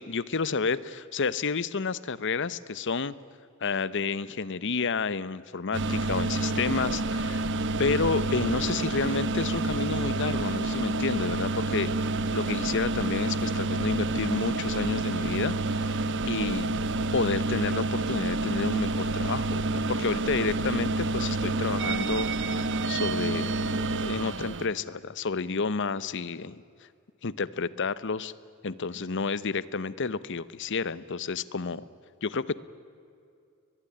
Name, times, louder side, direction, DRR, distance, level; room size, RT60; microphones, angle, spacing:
voice 1, 0.0-3.1 3.6-7.5 7.8-16.0 16.2-16.7 17.1-26.6 27.2-28.3 28.6-31.8 32.2-32.6, left 4 dB, 60° left, 18 dB, 0.8 m, -30 dB
sound 1, 5.7-24.7, right 2 dB, 60° right, 1.0 m, -28 dB
22.0 x 21.5 x 10.0 m, 2.4 s
head